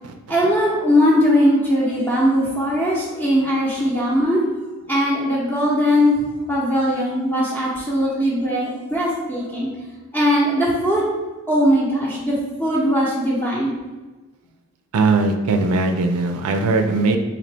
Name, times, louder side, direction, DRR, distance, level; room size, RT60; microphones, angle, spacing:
voice 1, 0.3-4.6 4.9-9.7 10.1-11.1 11.5-13.7, equal, 10° left, -10 dB, 0.7 m, -19 dB
voice 2, 14.9-17.2, right 3 dB, 90° right, 5 dB, 0.4 m, -19 dB
4.0 x 2.9 x 3.3 m, 1.2 s
head